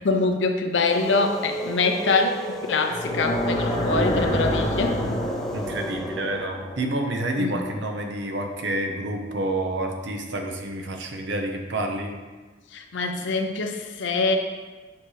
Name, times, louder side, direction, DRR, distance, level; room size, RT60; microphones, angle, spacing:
voice 1, 0.0-5.1 7.4-7.6 12.7-14.4, left 3 dB, 75° left, 5 dB, 0.6 m, -24 dB
sound 1, 0.9-6.5, equal, 5° left, 0.3 m, -33 dB
sound 2, 2.9-8.0, equal, 20° left, 1.4 m, -28 dB
voice 2, 5.5-12.2, right 1 dB, 70° right, 3 dB, 0.8 m, -28 dB
7.1 x 4.3 x 3.3 m, 1.3 s
head